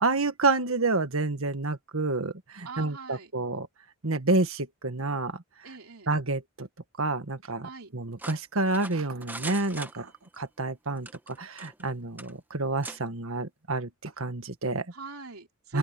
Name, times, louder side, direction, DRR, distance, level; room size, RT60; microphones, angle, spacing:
voice 1, 0.0-3.7 4.0-5.3 6.1-6.7 7.0-10.1 10.4-14.8 15.7-15.8, right 3 dB, 70° right, 1.7 m, -29 dB
voice 2, 2.6-3.3 5.6-6.1 7.6-7.9 14.9-15.8, right 4 dB, 85° right, 3.1 m, -42 dB
sound 1, 8.2-10.4 11.0-11.9 12.2-12.3 12.8-13.0, right 2 dB, 10° right, 1.1 m, -41 dB
open air
head